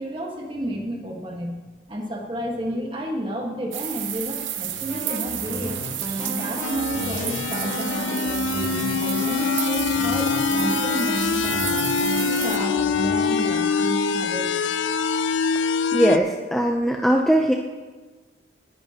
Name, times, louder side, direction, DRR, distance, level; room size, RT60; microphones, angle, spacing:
voice 1, 0.0-1.5 1.9-5.7 6.1-11.9 12.4-14.5, right 1 dB, 25° right, 0 dB, 1.5 m, -31 dB
sound 1, 3.7-12.6, right 11 dB, 85° right, 0.9 m, -32 dB
sound 2, 4.9-13.1, right 1 dB, 25° left, 2.9 m, -34 dB
sound 3, 6.6-16.2, left 5 dB, 80° left, 0.5 m, -24 dB
voice 2, 15.9-17.5, right 1 dB, ahead, 1 dB, 0.5 m, -20 dB
19.0 x 9.8 x 2.9 m, 1.3 s
head